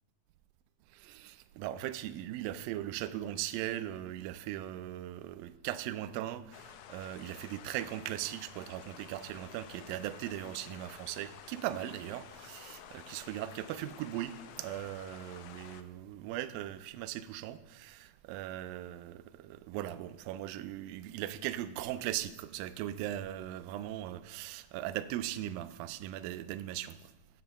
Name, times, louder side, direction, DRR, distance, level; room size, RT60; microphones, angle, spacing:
voice 1, 0.9-27.1, right 13 dB, 80° right, 2.1 m, -39 dB
sound 1, 6.5-15.8, left 10 dB, 80° left, 2.1 m, -51 dB
7.9 x 7.5 x 6.9 m
omnidirectional pair, 4.4 m